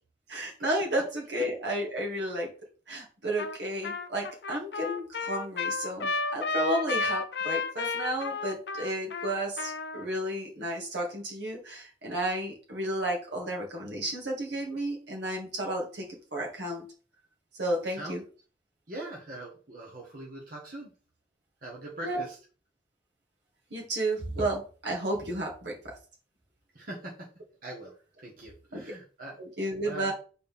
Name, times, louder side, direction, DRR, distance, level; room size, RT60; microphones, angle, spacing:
voice 1, 0.3-2.5 2.9-16.8 17.6-18.2 22.0-22.2 23.7-26.0 28.7-28.8 29.4-30.1, right 1 dB, 75° right, -1 dB, 2.2 m, -32 dB
Trumpet, 3.4-3.6 3.8-10.1, left 3 dB, 65° left, 0.6 m, -32 dB
voice 2, 18.9-20.9 21.6-22.4 26.7-27.1 27.6-27.9 28.2-29.4 29.8-30.1, right 1 dB, 50° right, -3 dB, 1.6 m, -41 dB
6.5 x 4.3 x 3.6 m, 0.37 s
head